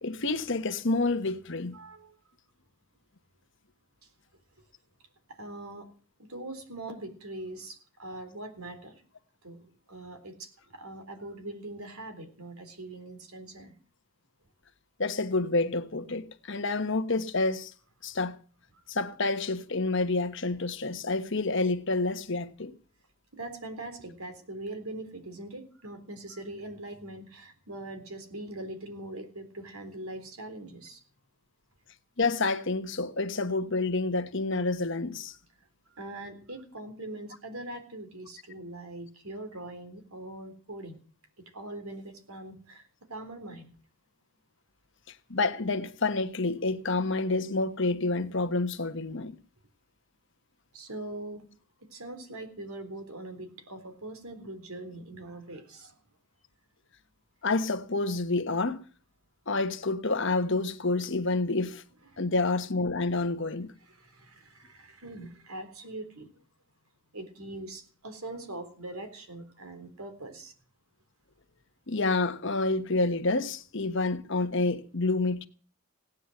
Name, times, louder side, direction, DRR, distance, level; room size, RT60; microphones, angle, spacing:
voice 1, 0.0-1.8 15.0-17.7 18.0-18.4 18.9-22.7 32.2-35.3 45.3-49.4 57.4-58.8 59.5-61.8 62.2-63.7 71.9-75.5, left 3 dB, 55° left, 1.2 m, -28 dB
voice 2, 1.7-2.2 4.0-4.1 5.3-5.9 6.2-9.0 9.4-13.8 23.3-31.0 35.9-41.0 41.4-43.7 50.7-51.5 51.9-56.0 62.1-62.2 63.8-66.3 67.1-70.5, right 1 dB, 80° right, 3.7 m, -42 dB
17.5 x 9.9 x 7.8 m
head